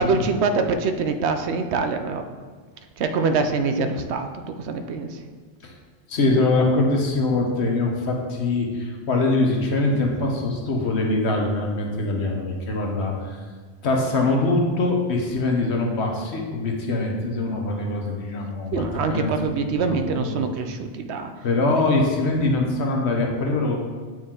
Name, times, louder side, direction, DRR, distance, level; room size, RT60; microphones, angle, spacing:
voice 1, 0.0-2.2 3.0-5.2 18.7-21.5, right 4 dB, 85° right, 7 dB, 0.9 m, -24 dB
voice 2, 6.1-13.4 13.8-18.8 19.1-19.3 19.7-20.4 21.4-23.8, left 2 dB, 80° left, 0 dB, 1.3 m, -23 dB
8.6 x 4.6 x 3.7 m, 1.5 s
omnidirectional pair, 1.1 m